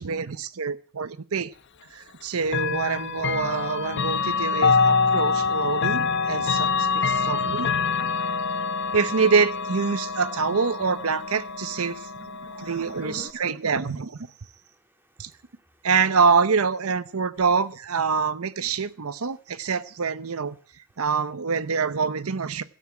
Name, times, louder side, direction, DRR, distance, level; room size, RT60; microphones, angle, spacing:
voice 1, 0.0-1.5 1.9-7.7 8.9-12.0 12.6-14.2 15.2-15.3 15.8-20.6 21.0-22.6, right 5 dB, 85° right, 14 dB, 0.7 m, -25 dB
Chime / Clock, 2.5-13.3, left 5 dB, 55° left, 1.2 m, -26 dB
voice 2, 13.0-13.3 14.4-15.9 20.9-21.0, equal, 10° right, 5 dB, 2.3 m, -48 dB
13.0 x 9.3 x 8.5 m, 0.41 s
head